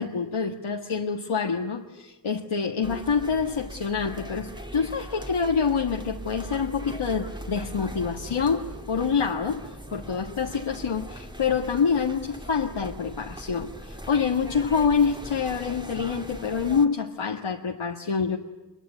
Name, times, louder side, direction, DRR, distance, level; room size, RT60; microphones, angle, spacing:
voice 1, 0.0-18.4, left 6 dB, 90° left, 0 dB, 1.7 m, -26 dB
sound 1, 2.8-16.9, right 1 dB, 10° right, 2.4 m, -40 dB
25.0 x 23.0 x 9.7 m, 1.2 s
wide cardioid pair, 65°, 47 cm